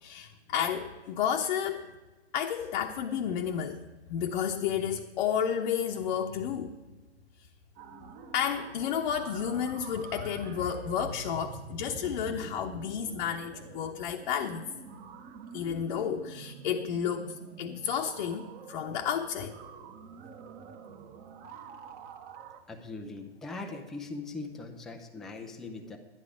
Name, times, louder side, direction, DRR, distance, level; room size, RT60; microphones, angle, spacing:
voice 1, 0.0-1.9 2.3-6.7 8.3-14.6 15.5-19.5, left 8 dB, 50° left, 1 dB, 0.9 m, -31 dB
sound 1, 7.8-22.6, right 6 dB, 30° right, 1.1 m, -47 dB
voice 2, 22.7-26.0, left 3 dB, ahead, 3 dB, 0.3 m, -40 dB
11.0 x 11.0 x 4.9 m, 1.2 s
hypercardioid pair, 135°, 33 cm